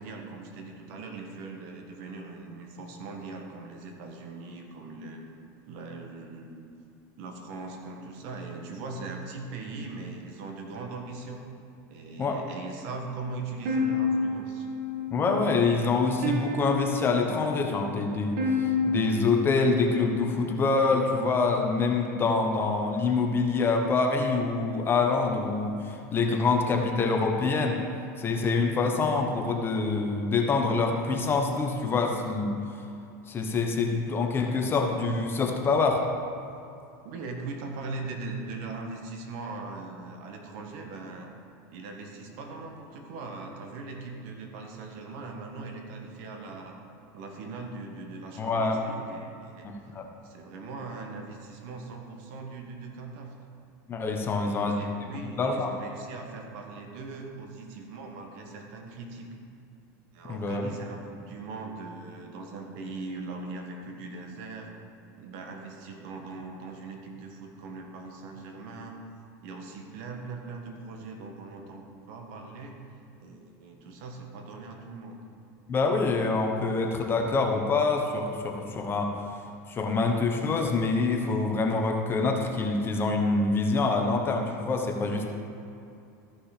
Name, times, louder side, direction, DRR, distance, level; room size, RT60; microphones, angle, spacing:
voice 1, 0.0-5.2 5.7-6.7 7.2-11.4 11.9-14.7 37.0-41.3 41.7-46.8 47.1-49.7 50.2-53.3 54.3-59.4 60.1-64.7 65.2-69.0 69.4-75.2, right 3 dB, 60° right, 2 dB, 1.5 m, -40 dB
sound 1, 13.6-20.8, left 3 dB, 80° right, 1.7 m, -31 dB
voice 2, 15.1-27.8 28.2-32.6 33.3-36.0 48.4-48.8 49.6-50.1 53.9-54.8 55.1-55.7 60.3-60.7 75.7-79.1 79.7-85.3, left 4 dB, 25° left, 2 dB, 1.1 m, -26 dB
13.5 x 6.0 x 5.0 m, 2.6 s
supercardioid pair, 135°, 9 cm